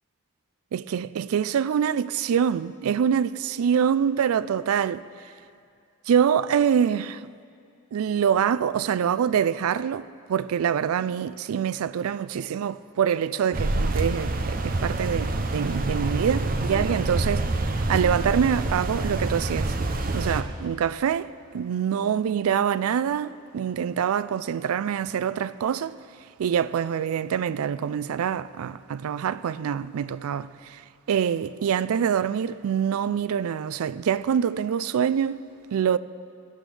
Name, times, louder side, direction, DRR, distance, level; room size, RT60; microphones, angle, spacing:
voice 1, 0.7-5.0 6.1-7.2 7.9-19.8 20.1-21.3 21.5-26.0 26.4-30.8 31.1-35.4 35.7-36.0, right 8 dB, 90° right, 0.3 m, -25 dB
sound 1, 13.5-20.4, right 2 dB, 40° right, 0.6 m, -27 dB
18.0 x 12.0 x 3.3 m
head